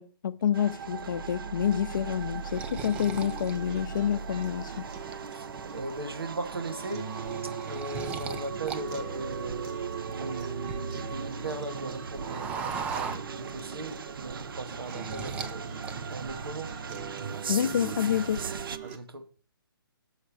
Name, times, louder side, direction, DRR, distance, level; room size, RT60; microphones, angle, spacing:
voice 1, 0.0-4.8 17.5-18.4, left 9 dB, 60° left, 0.5 m, -28 dB
sound 1, 0.5-18.8, right 6 dB, 70° right, 0.5 m, -38 dB
sound 2, 1.7-4.4 4.9-5.6 6.0-6.2 6.5-8.8 9.1-11.2 11.5-13.8 14.1-15.6 15.8-16.4, right 6 dB, 10° right, 0.4 m, -39 dB
sound 3, 3.0-19.0, right 5 dB, 25° right, 0.8 m, -44 dB
voice 2, 5.7-7.1 7.4-9.7 10.1-15.7 16.1-16.7 18.8-19.3, right 2 dB, 90° right, 1.2 m, -38 dB
6.5 x 5.7 x 4.7 m
hypercardioid pair, 145°, 12 cm